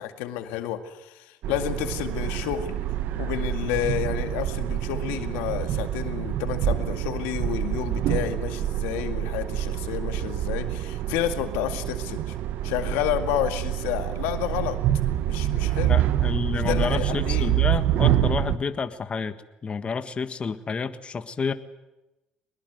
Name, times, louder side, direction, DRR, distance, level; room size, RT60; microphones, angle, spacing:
voice 1, 0.0-2.8 3.2-12.4 12.6-14.8 15.3-16.0 16.5-17.5, left 12 dB, 85° left, 8 dB, 2.1 m, -30 dB
sound 1, 1.4-18.6, right 12 dB, 70° right, 1.5 m, -26 dB
voice 2, 15.9-21.5, left 5 dB, 35° left, 10 dB, 1.7 m, -29 dB
23.0 x 20.5 x 9.5 m, 0.99 s
supercardioid pair, 80°, 3 cm